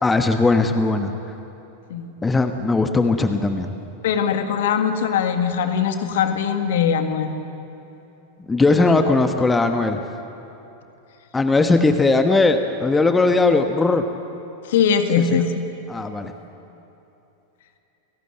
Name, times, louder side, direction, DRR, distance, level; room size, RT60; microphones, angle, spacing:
voice 1, 0.0-1.1 2.2-3.7 8.5-10.0 11.3-14.0 15.2-15.4 15.9-16.3, left 3 dB, 10° left, 7 dB, 1.2 m, -19 dB
voice 2, 4.0-7.3 8.8-8.9 14.7-15.6, left 7 dB, 55° left, 7 dB, 1.8 m, -21 dB
29.5 x 18.0 x 7.9 m, 3.0 s
figure-of-eight pair, 90°, 0 cm